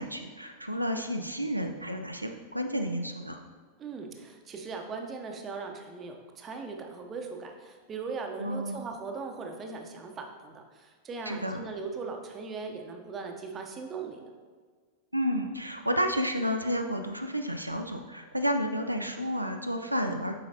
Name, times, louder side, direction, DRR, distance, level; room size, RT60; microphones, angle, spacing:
voice 1, 0.0-3.4 8.4-8.9 11.3-11.6 15.1-20.3, equal, 90° right, 5 dB, 0.3 m, -31 dB
voice 2, 3.8-14.2, right 4 dB, 25° right, 3 dB, 0.8 m, -39 dB
7.6 x 4.9 x 2.8 m, 1.5 s
figure-of-eight pair, 90°, 0 cm